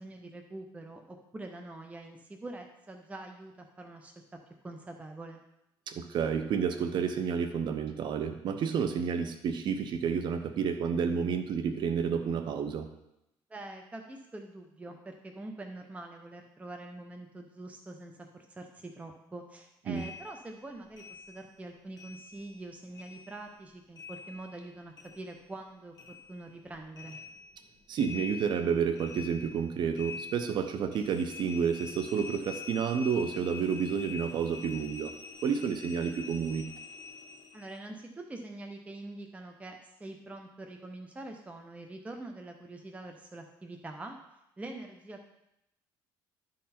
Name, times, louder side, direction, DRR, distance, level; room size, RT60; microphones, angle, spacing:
voice 1, 0.0-4.4 4.6-5.4 13.5-27.2 37.5-44.2 44.6-45.2, right 2 dB, 15° right, 3 dB, 0.7 m, -45 dB
voice 2, 5.9-12.9 19.9-20.1 27.9-35.1 35.4-36.7, right 6 dB, 60° right, 8 dB, 0.7 m, -30 dB
sound 1, 20.0-22.7 22.9-25.7 25.9-37.7, left 5 dB, 45° left, 1.4 m, -46 dB
11.0 x 3.9 x 4.3 m, 0.85 s
cardioid pair, 100°, 9 cm